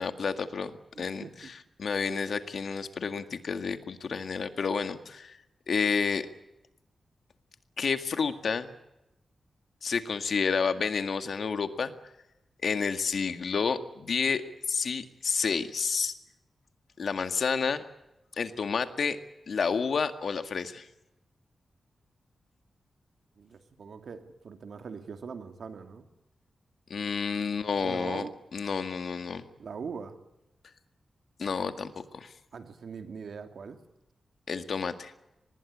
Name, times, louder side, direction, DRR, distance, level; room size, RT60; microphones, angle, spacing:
voice 1, 0.0-5.4 5.7-6.3 7.8-8.7 9.8-11.9 12.6-14.4 14.7-16.1 17.0-17.8 18.4-19.2 19.5-20.9 26.9-29.4 31.4-32.3 34.5-35.1, left 5 dB, 65° left, 9 dB, 1.9 m, -30 dB
voice 2, 0.9-1.5 23.4-26.1 27.8-28.3 29.6-30.2 32.5-33.8, right 5 dB, 75° right, 7 dB, 2.5 m, -41 dB
25.0 x 20.5 x 8.6 m, 0.91 s
wide cardioid pair, 125°, 0 cm